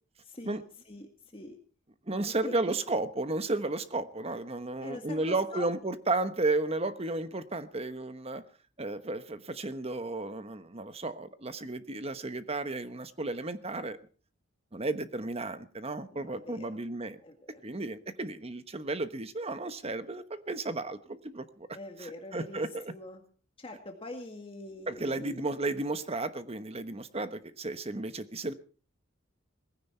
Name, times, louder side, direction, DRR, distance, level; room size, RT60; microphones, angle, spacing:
voice 1, 0.2-1.6 2.3-2.8 4.8-5.7 16.1-16.8 17.2-17.6 21.7-23.2 23.6-25.5, left 1 dB, 25° left, 3 dB, 1.9 m, -44 dB
voice 2, 2.1-8.4 8.8-14.0 14.7-17.2 17.6-21.7 22.0-22.9 24.9-28.5, right 2 dB, 30° right, 11 dB, 1.1 m, -33 dB
19.0 x 15.5 x 4.5 m, 0.40 s
head